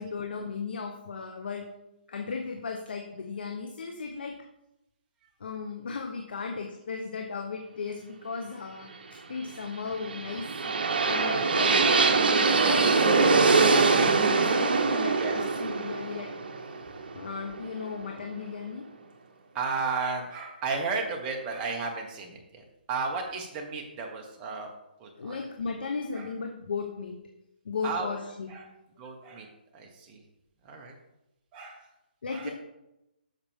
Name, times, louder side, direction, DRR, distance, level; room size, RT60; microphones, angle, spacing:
voice 1, 0.0-1.6 2.1-4.4 5.4-8.9 9.3-10.6 11.1-11.8 12.6-16.3 17.1-18.9 25.2-27.2 27.6-28.5 32.2-32.5, left 5 dB, 70° left, 3 dB, 1.0 m, -36 dB
sound 1, 9.9-17.9, right 4 dB, 65° right, 1.1 m, -23 dB
voice 2, 19.5-24.7 25.0-25.4 26.1-26.3 27.8-28.1 28.5-28.7 29.0-30.2 30.6-30.9 31.5-31.9 32.3-32.5, right 4 dB, 20° right, 1 dB, 1.3 m, -34 dB
8.0 x 6.8 x 3.6 m, 0.90 s
hypercardioid pair, 150°, 6 cm